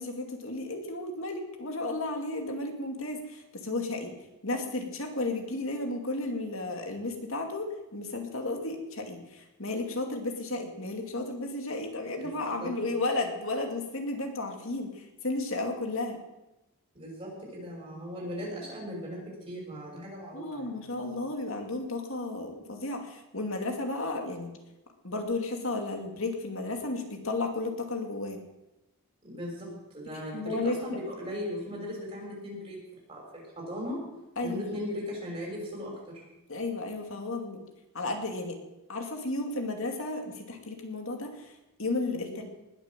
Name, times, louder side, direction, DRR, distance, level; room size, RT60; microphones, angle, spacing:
voice 1, 0.0-4.1 4.4-16.2 20.3-24.5 25.0-28.4 30.3-30.8 34.4-34.7 36.5-37.6 37.9-38.6 38.9-41.5 41.8-42.4, left 2 dB, 65° left, 4 dB, 2.4 m, -33 dB
voice 2, 16.9-21.2 29.2-32.8 33.1-34.0 34.4-36.2 42.1-42.4, left 1 dB, 25° right, -3 dB, 6.2 m, -38 dB
20.0 x 7.6 x 7.5 m, 0.95 s
head